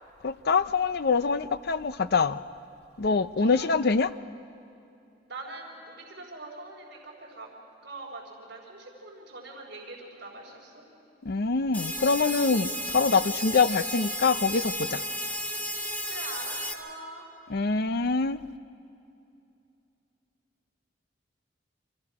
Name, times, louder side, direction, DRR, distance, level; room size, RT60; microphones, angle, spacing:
voice 1, 0.2-2.4 3.0-4.1 11.2-15.0 17.5-18.4, left 4 dB, 60° left, 13 dB, 0.6 m, -25 dB
voice 2, 5.3-7.5 7.8-10.9 16.0-17.3, right 2 dB, 60° right, -4 dB, 4.0 m, -43 dB
sound 1, 11.7-16.7, equal, 10° left, 1.7 m, -33 dB
29.5 x 25.5 x 4.9 m, 2.6 s
head